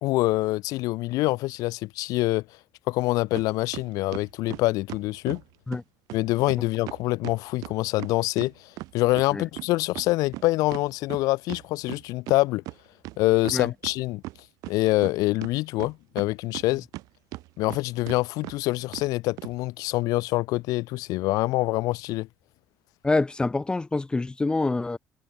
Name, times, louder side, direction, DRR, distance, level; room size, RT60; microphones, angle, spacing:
voice 1, 0.0-2.4 2.9-5.4 6.1-8.5 8.9-12.6 13.2-14.2 14.7-16.8 17.6-22.3, left 19 dB, 85° left, 0.5 m, -25 dB
sound 1, 3.4-3.5 3.7-5.4 5.7-5.8 6.1-6.2 6.5-6.6 6.9-9.3 9.6-12.4 12.7-12.8 13.0-14.0 14.2-15.1 15.4-17.0 17.3-17.8 18.1-18.2 18.4-18.6 18.9-19.1 19.4-19.5, right 19 dB, 85° right, 3.1 m, -38 dB
voice 2, 23.0-25.0, left 3 dB, 15° left, 0.6 m, -26 dB
cardioid pair, 110°, 6 cm